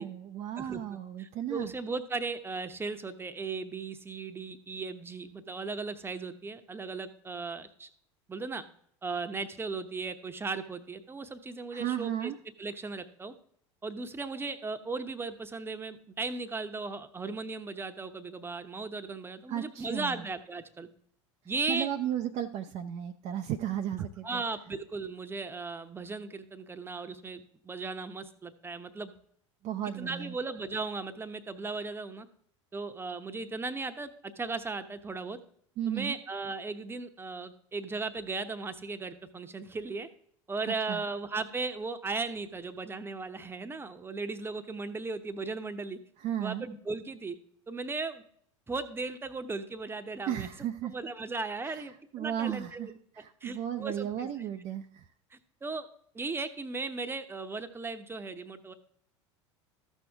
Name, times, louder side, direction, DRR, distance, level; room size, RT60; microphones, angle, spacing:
voice 1, 0.0-1.7 11.7-12.4 19.5-20.2 21.7-24.4 29.6-30.4 35.8-36.2 40.9-41.0 46.2-46.7 50.3-50.9 51.7-51.8 52.1-52.9 53.1-55.0, right 10 dB, 45° right, 7 dB, 0.5 m, -34 dB
voice 2, 0.6-7.9 8.3-8.6 9.0-12.3 12.6-13.3 13.8-20.9 21.4-21.9 24.2-29.1 29.8-32.3 32.7-35.4 35.9-40.1 40.5-46.0 46.4-47.4 47.7-48.2 48.7-50.5 50.8-52.9 53.4-54.3 55.3-55.9 56.1-58.7, right 3 dB, 15° right, 9 dB, 0.9 m, -37 dB
13.5 x 6.3 x 3.5 m, 0.64 s
hypercardioid pair, 80°, 16 cm